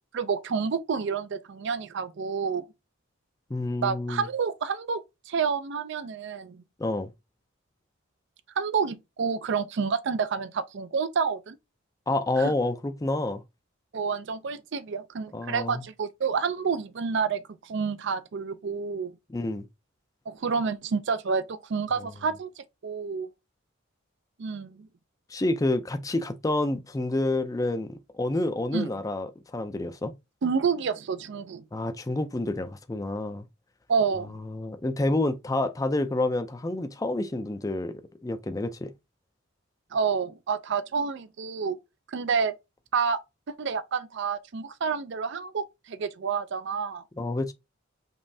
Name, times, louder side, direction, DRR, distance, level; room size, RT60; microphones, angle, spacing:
voice 1, 0.1-2.7 3.8-6.6 8.6-11.6 12.4-12.5 13.9-19.1 20.3-23.3 24.4-24.9 28.7-28.9 30.4-31.6 33.9-34.3 39.9-41.8 42.1-42.5 42.9-43.2 43.6-47.0, right 5 dB, 60° right, 0.4 m, -29 dB
voice 2, 3.5-4.3 6.8-7.1 12.1-13.4 15.3-15.8 19.3-19.7 25.3-30.1 31.7-33.5 34.5-37.9 38.2-38.9 47.2-47.5, left 2 dB, 15° left, 0.4 m, -28 dB
5.3 x 3.1 x 2.7 m
head